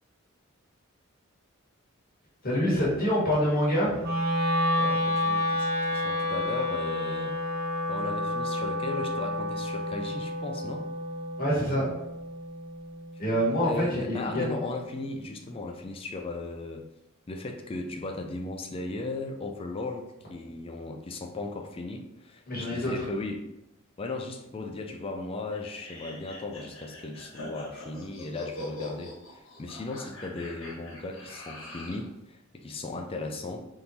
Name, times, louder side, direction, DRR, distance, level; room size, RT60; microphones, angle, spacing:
voice 1, 2.4-4.0 11.4-11.8 13.2-14.5 22.5-23.0, equal, 45° left, -6 dB, 1.4 m, -26 dB
Wind instrument woodwind instrument, 4.0-14.2, left 1 dB, 50° right, 0.6 m, -30 dB
voice 2, 4.8-7.3 7.9-10.9 13.6-16.8 17.3-23.5 24.0-33.7, left 2 dB, 25° left, 4 dB, 0.4 m, -36 dB
sound 1, 25.5-32.1, left 2 dB, 85° left, 1.2 m, -43 dB
3.7 x 2.9 x 4.0 m, 0.89 s
head